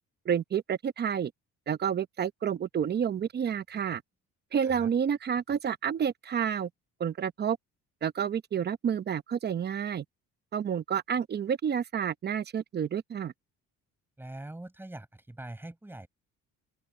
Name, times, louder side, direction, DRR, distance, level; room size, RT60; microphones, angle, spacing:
voice 1, 0.2-1.3 1.7-4.0 4.5-6.7 7.0-7.6 8.0-10.0 10.5-13.3, right 8 dB, 35° right, 0.8 m, -29 dB
voice 2, 14.2-16.1, right 1 dB, 5° right, 7.1 m, -43 dB
open air
cardioid pair, 140°, 29 cm